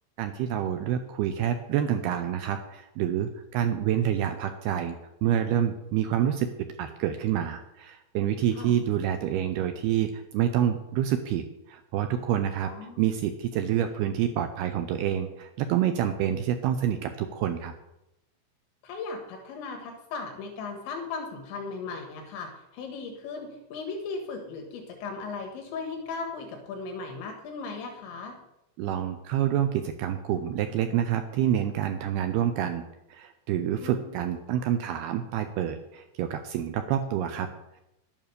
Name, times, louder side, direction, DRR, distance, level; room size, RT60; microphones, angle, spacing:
voice 1, 0.2-5.0 5.2-12.7 13.0-17.7 28.8-32.8 33.1-37.5, right 10 dB, 80° right, 8 dB, 2.3 m, -27 dB
voice 2, 12.7-13.0 18.8-28.4 33.8-34.1, left 4 dB, 80° left, 3 dB, 3.7 m, -37 dB
11.5 x 9.1 x 6.7 m, 0.88 s
omnidirectional pair, 5.3 m